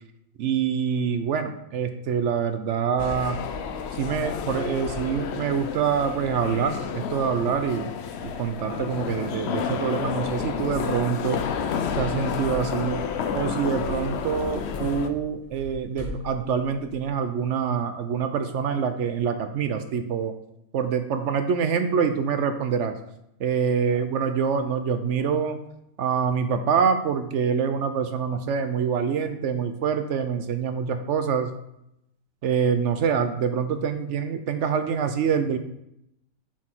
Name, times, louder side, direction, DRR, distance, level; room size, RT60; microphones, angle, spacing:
voice 1, 0.4-3.4 3.9-7.9 8.2-11.4 12.0-13.0 13.3-20.3 20.7-22.9 23.4-25.6 26.0-31.5 32.4-35.6, right 6 dB, 65° right, 8 dB, 0.8 m, -25 dB
sound 1, 3.0-15.1, left 6 dB, 60° left, 0.7 m, -30 dB
sound 2, 10.2-17.1, left 1 dB, 25° right, 1.4 m, -42 dB
7.2 x 4.7 x 4.4 m, 0.80 s
omnidirectional pair, 1.5 m